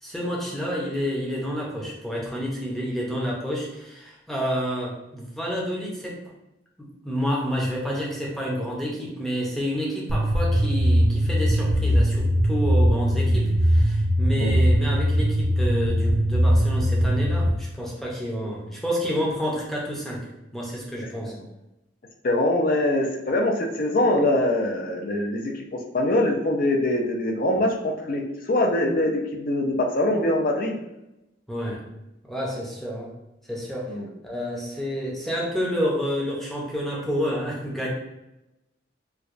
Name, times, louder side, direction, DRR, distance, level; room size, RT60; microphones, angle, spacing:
voice 1, 0.0-6.2 6.8-21.4 31.5-31.8 32.3-33.1 33.5-34.0 34.2-37.9, equal, ahead, -4 dB, 0.6 m, -29 dB
sound 1, 10.1-17.5, equal, 70° right, 0.6 m, -21 dB
voice 2, 22.2-30.8 33.9-34.1, left 1 dB, 45° left, 2 dB, 0.5 m, -23 dB
4.6 x 2.2 x 2.5 m, 0.93 s
head